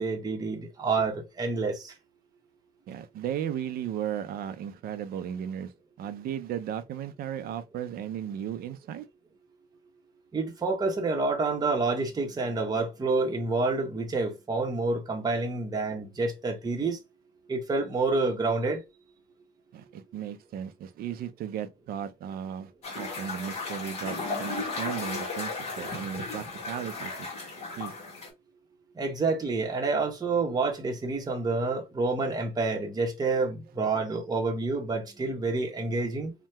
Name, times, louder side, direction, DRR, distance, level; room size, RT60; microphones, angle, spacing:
voice 1, 0.0-1.9 10.3-17.0 17.5-18.8 29.0-36.3, right 3 dB, 20° right, 0.9 m, -28 dB
voice 2, 2.9-5.7 6.0-9.1 19.7-27.3 27.8-27.9, right 9 dB, 65° right, 0.5 m, -35 dB
sound 1, 22.8-28.3, left 3 dB, 40° left, 1.4 m, -35 dB
2.7 x 2.2 x 3.3 m
cardioid pair, 110°, 17 cm